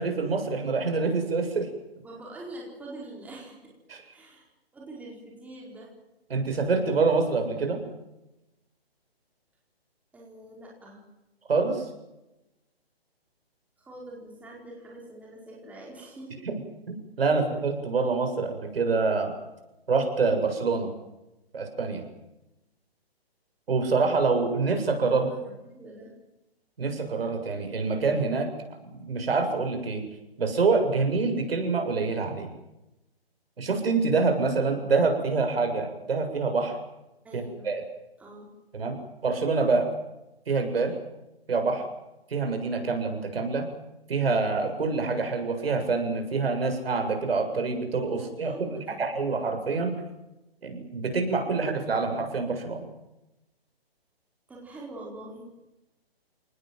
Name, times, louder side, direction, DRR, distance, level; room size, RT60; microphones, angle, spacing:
voice 1, 0.0-1.7 3.9-4.0 6.3-7.8 11.5-11.9 16.5-16.6 16.9-19.3 19.9-20.9 21.5-22.1 23.7-25.3 26.8-28.5 28.9-30.0 30.4-32.5 33.6-36.8 37.3-37.8 38.7-39.9 40.5-40.9 41.5-41.8 42.3-43.7 44.1-50.0 50.6-52.9, right 4 dB, 70° right, 5 dB, 7.5 m, -26 dB
voice 2, 2.0-3.7 4.1-5.9 10.1-11.0 13.8-16.3 25.1-26.1 37.2-37.7 38.2-38.5 48.2-49.0 54.5-55.5, right 1 dB, 5° right, -3 dB, 4.7 m, -44 dB
29.5 x 19.5 x 7.9 m, 0.95 s
hypercardioid pair, 165°, 31 cm